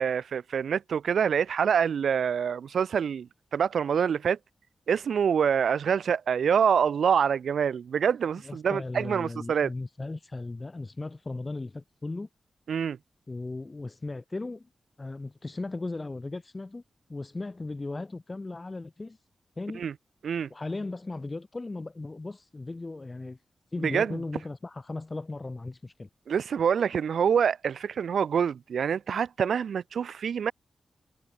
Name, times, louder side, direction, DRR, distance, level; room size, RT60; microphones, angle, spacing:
voice 1, 0.0-4.4 4.9-9.7 12.7-13.0 19.7-19.9 20.2-20.5 23.8-24.2 26.3-30.5, right 7 dB, 85° right, 0.8 m, -26 dB
voice 2, 8.4-12.3 13.3-14.7 15.0-16.8 17.1-19.2 19.6-19.8 20.5-23.4 23.7-26.1, left 2 dB, 20° left, 2.6 m, -37 dB
wide cardioid pair, 180°, 0 cm